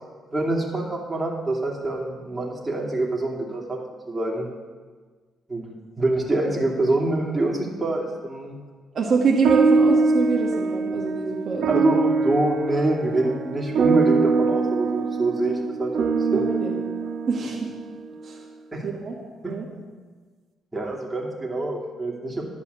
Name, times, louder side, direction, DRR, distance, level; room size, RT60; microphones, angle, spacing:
voice 1, 0.3-3.8 4.1-4.4 5.5-8.6 11.7-16.5 18.7-19.0 19.4-19.5 20.7-22.4, right 2 dB, 15° right, -3 dB, 2.6 m, -26 dB
voice 2, 8.9-11.7 16.3-16.8 17.3-17.7 18.2-18.4 18.8-19.1 19.5-19.6, right 4 dB, 50° right, -2 dB, 1.5 m, -25 dB
sound 1, 9.4-18.1, right 4 dB, 75° right, 0.8 m, -23 dB
11.5 x 5.5 x 8.2 m, 1.4 s
cardioid pair, 90°, 0 cm